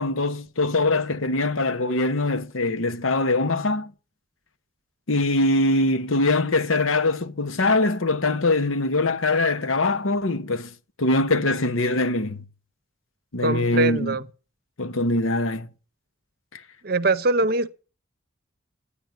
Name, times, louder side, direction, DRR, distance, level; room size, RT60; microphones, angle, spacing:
voice 1, 0.0-3.9 5.1-10.7 11.0-12.4 13.3-14.2 14.8-15.7 16.5-16.6, left 2 dB, 90° left, 1.0 m, -23 dB
voice 2, 13.4-14.3 16.8-17.7, right 2 dB, 50° right, 0.7 m, -22 dB
10.0 x 9.3 x 9.2 m
head